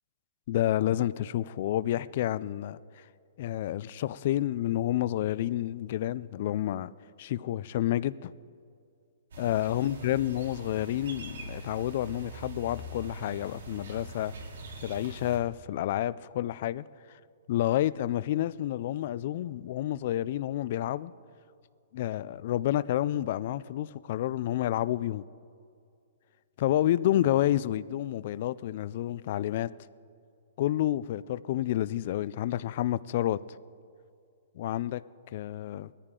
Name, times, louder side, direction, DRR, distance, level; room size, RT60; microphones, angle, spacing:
voice 1, 0.5-3.1 3.4-6.9 7.2-8.3 9.4-14.3 14.8-17.2 17.5-21.1 21.9-25.2 26.6-29.7 30.6-33.4 34.5-35.0 35.3-35.9, left 13 dB, 40° left, 0.3 m, -29 dB
sound 1, 9.3-15.4, right 1 dB, 80° right, 2.6 m, -43 dB
19.0 x 14.0 x 3.8 m
hypercardioid pair, 170°, 0 cm